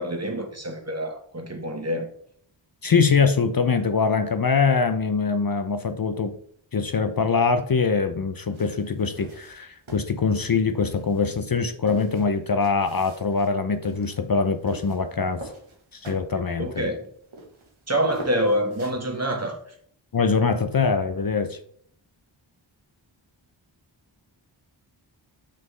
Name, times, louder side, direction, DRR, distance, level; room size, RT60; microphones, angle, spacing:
voice 1, 0.0-2.1 16.6-17.1 17.9-19.6, equal, 30° right, 1.2 m, -26 dB
voice 2, 2.8-6.4 6.7-15.4 15.9-16.8 20.1-21.6, left 5 dB, 45° left, 0.5 m, -23 dB
sound 1, 8.5-19.1, right 3 dB, 75° right, 1.2 m, -45 dB
5.7 x 5.3 x 3.1 m
wide cardioid pair, 45°, 49 cm